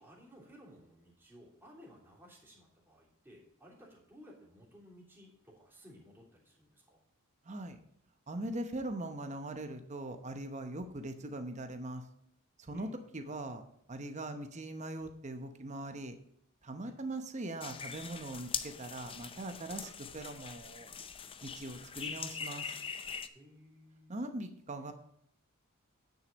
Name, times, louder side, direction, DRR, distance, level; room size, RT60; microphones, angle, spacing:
voice 1, 0.0-7.0 12.7-13.1 16.8-17.0 23.3-24.4, equal, 10° right, -4 dB, 3.2 m, -57 dB
voice 2, 7.4-7.8 8.3-12.0 12.6-13.6 13.9-16.1 16.6-20.9 21.4-22.8 24.1-24.9, right 1 dB, 35° right, 7 dB, 0.8 m, -41 dB
sound 1, 17.6-23.3, left 6 dB, 25° left, 0.5 m, -42 dB
9.6 x 6.6 x 5.2 m, 0.73 s
head